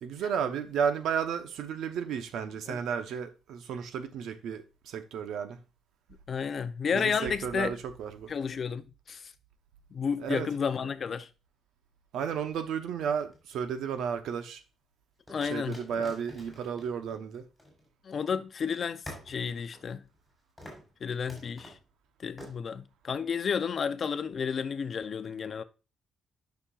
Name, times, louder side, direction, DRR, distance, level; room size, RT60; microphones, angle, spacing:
voice 1, 0.0-5.6 6.9-8.3 10.2-10.5 12.1-14.6 15.5-17.4, right 7 dB, 90° right, 0.9 m, -33 dB
voice 2, 6.3-7.8 8.3-9.3 9.9-11.3 15.3-16.1 18.0-20.0 21.0-21.8 22.2-25.6, left 6 dB, 35° left, 0.5 m, -32 dB
sound 1, 13.2-14.1 15.3-18.2 18.5-18.6 19.1-20.3 20.6-20.9 21.3-21.8 22.4-22.6, left 1 dB, 5° left, 3.7 m, -48 dB
10.0 x 5.9 x 2.4 m
cardioid pair, 170°, 0 cm